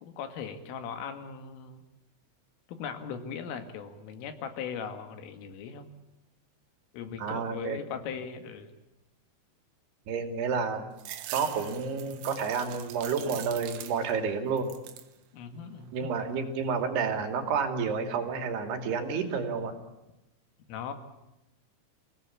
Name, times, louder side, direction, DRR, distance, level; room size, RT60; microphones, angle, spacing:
voice 1, 0.0-1.8 2.7-5.9 6.9-8.7 15.3-16.1 20.7-20.9, left 7 dB, 85° left, 7 dB, 4.6 m, -39 dB
voice 2, 7.2-7.8 10.1-10.9 11.3-14.7 15.9-19.8, right 5 dB, 60° right, 6 dB, 4.3 m, -30 dB
sound 1, 11.0-14.3 14.6-15.2 15.6-16.4, right 11 dB, 80° right, 3.8 m, -43 dB
27.5 x 18.0 x 8.6 m, 0.94 s
omnidirectional pair, 5.7 m